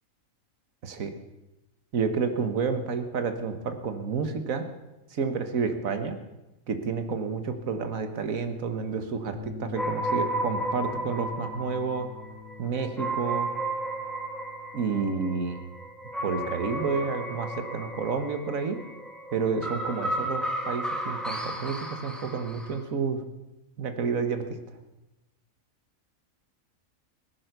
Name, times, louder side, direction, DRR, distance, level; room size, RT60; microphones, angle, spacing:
voice 1, 0.8-1.1 1.9-4.6 5.1-6.2 6.7-12.1 12.6-13.5 14.7-15.7 16.2-18.8 19.3-23.2 23.8-24.4, right 5 dB, 70° right, 8 dB, 1.7 m, -30 dB
sound 1, 9.3-17.8, left 7 dB, 35° left, 1.8 m, -45 dB
sound 2, 9.8-22.8, right 1 dB, ahead, 1.7 m, -33 dB
17.5 x 10.5 x 6.7 m, 0.98 s
omnidirectional pair, 1.5 m